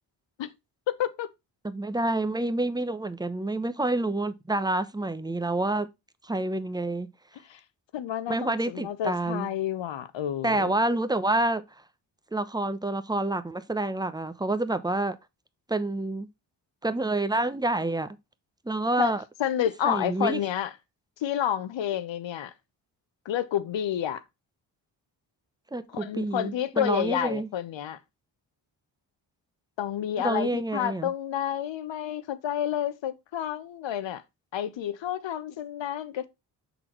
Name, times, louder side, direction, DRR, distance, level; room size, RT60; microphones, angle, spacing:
voice 1, 0.9-1.3 7.5-7.6 7.9-10.7 19.0-19.1 19.4-20.7 21.2-22.5 23.2-24.2 25.9-28.0 29.8-34.2 34.5-36.3, left 10 dB, 65° left, 0.9 m, -30 dB
voice 2, 1.6-5.9 6.2-7.1 8.3-9.5 10.4-11.6 12.3-15.2 15.7-16.3 16.8-18.1 18.6-19.2 19.8-20.4 25.7-27.5 30.2-31.1, right 2 dB, 10° right, 0.9 m, -28 dB
6.1 x 3.9 x 4.5 m
supercardioid pair, 40°, 48 cm